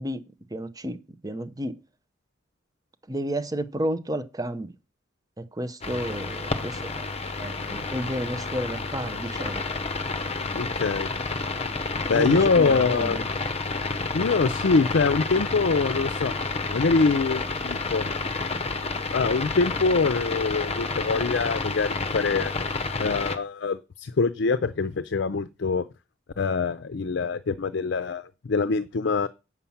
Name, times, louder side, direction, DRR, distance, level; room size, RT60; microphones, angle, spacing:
voice 1, 0.0-1.8 3.1-4.7 5.4-7.0 7.4-9.6 11.9-13.2, right 1 dB, 20° right, 0.7 m, -32 dB
sound 1, 5.8-23.4, left 3 dB, 35° left, 0.8 m, -30 dB
voice 2, 10.5-11.1 12.1-13.2 14.1-16.3 16.7-18.1 19.1-22.5 23.0-25.9 26.4-29.3, left 4 dB, 65° left, 0.5 m, -24 dB
8.4 x 5.6 x 7.2 m
head